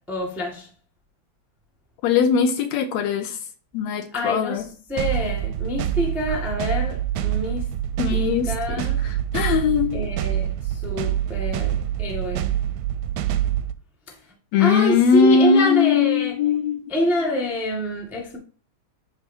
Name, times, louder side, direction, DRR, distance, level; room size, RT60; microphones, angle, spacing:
voice 1, 0.1-0.7 4.1-7.6 8.1-9.0 9.9-12.5 14.1-14.2 14.6-16.4 16.9-18.4, left 1 dB, ahead, 0.5 m, -27 dB
voice 2, 2.0-3.4 3.7-4.6 8.0-8.9 9.3-10.0 14.5-16.9, left 6 dB, 75° left, 1.8 m, -20 dB
sound 1, 5.0-13.7, right 11 dB, 85° right, 2.0 m, -26 dB
11.5 x 3.8 x 2.7 m
omnidirectional pair, 3.3 m